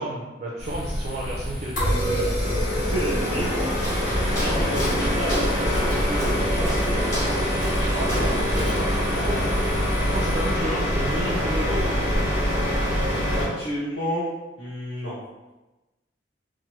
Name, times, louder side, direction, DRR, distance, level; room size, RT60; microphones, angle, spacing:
voice 1, 0.0-2.7 7.8-9.0 9.3-9.5 10.0-12.0, right 1 dB, 40° right, -3 dB, 0.3 m, -32 dB
sound 1, 0.6-10.5, equal, ahead, 0.6 m, -35 dB
sound 2, 1.8-13.4, equal, 50° left, 1.4 m, -24 dB
voice 2, 2.7-3.7 4.1-7.1 8.1-8.9 9.1-9.5 13.4-14.2 14.6-15.2, equal, 70° left, -12 dB, 1.1 m, -31 dB
Walk footsteps, 3.7-9.0, equal, 20° left, 1.2 m, -32 dB
2.9 x 2.0 x 3.0 m, 1.1 s
head